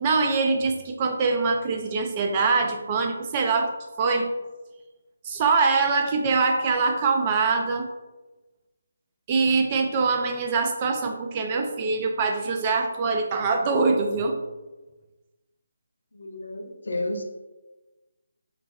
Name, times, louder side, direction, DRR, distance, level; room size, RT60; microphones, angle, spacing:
voice 1, 0.0-3.7 4.0-4.3 5.2-7.9 9.3-14.4, right 4 dB, 25° right, 3 dB, 0.3 m, -23 dB
voice 2, 16.1-17.2, left 1 dB, 65° left, 3 dB, 0.4 m, -31 dB
2.9 x 2.3 x 2.6 m, 1.1 s
figure-of-eight pair, 150°, 0 cm